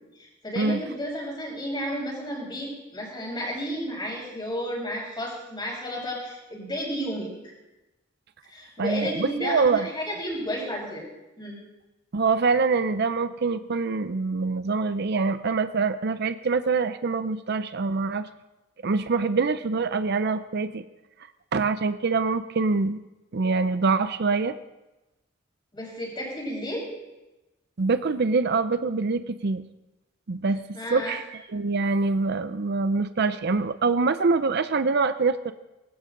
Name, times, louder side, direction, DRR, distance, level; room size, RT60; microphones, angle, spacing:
voice 1, 0.2-7.5 8.5-11.0 11.4-11.6 25.7-26.9 30.7-31.2, equal, 25° left, -2 dB, 5.7 m, -32 dB
voice 2, 8.8-9.9 12.1-18.3 18.8-20.8 21.5-23.0 23.3-24.6 27.8-29.6 30.3-30.6 30.9-35.5, right 4 dB, 55° right, 12 dB, 0.6 m, -25 dB
19.0 x 16.0 x 3.9 m, 1.0 s
head